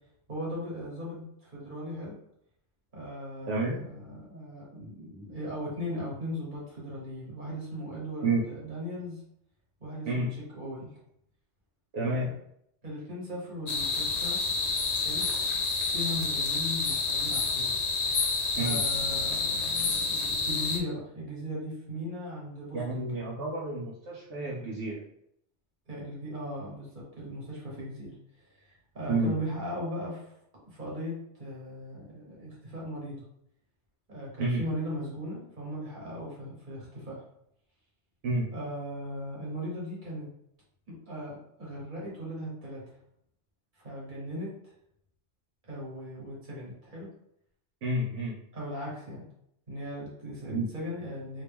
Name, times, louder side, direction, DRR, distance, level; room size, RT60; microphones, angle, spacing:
voice 1, 0.3-2.2 2.9-9.2 9.8-11.0 12.0-12.3 12.8-14.4 15.0-15.2 15.9-17.7 18.6-23.2 25.9-30.3 30.6-33.2 34.1-37.2 38.5-40.3 40.9-42.8 43.7-44.5 45.6-47.1 48.5-49.2 49.7-51.4, equal, 40° right, -5 dB, 1.5 m, -38 dB
voice 2, 3.4-3.8 8.2-8.4 10.1-10.3 11.9-12.3 18.6-18.8 22.7-25.0 29.1-29.3 34.4-34.7 38.2-38.5 47.8-48.4 50.4-50.7, right 2 dB, 75° right, -6 dB, 1.1 m, -30 dB
sound 1, 13.7-20.8, left 4 dB, 60° left, 0.4 m, -29 dB
2.9 x 2.9 x 3.4 m, 0.74 s
omnidirectional pair, 1.3 m